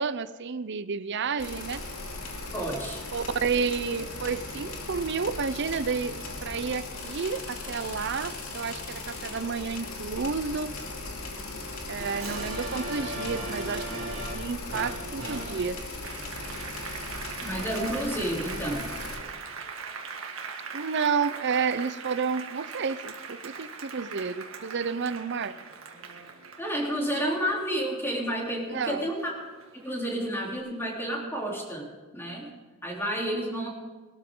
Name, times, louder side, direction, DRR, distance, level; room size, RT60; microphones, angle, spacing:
voice 1, 0.0-1.8 3.1-10.7 11.9-15.8 20.7-25.6 28.7-29.1 33.2-33.7, right 5 dB, 55° right, 14 dB, 0.6 m, -31 dB
sound 1, 1.4-19.2, left 2 dB, 80° left, 2.6 m, -38 dB
voice 2, 2.5-3.0 17.4-18.9 26.6-29.3 29.8-31.9 32.1-32.5 32.8-33.7, equal, 10° left, -2 dB, 3.3 m, -30 dB
Applause, 12.0-28.8 29.2-30.4, right 3 dB, 70° right, 1.8 m, -40 dB
21.0 x 12.5 x 3.8 m, 1.3 s
head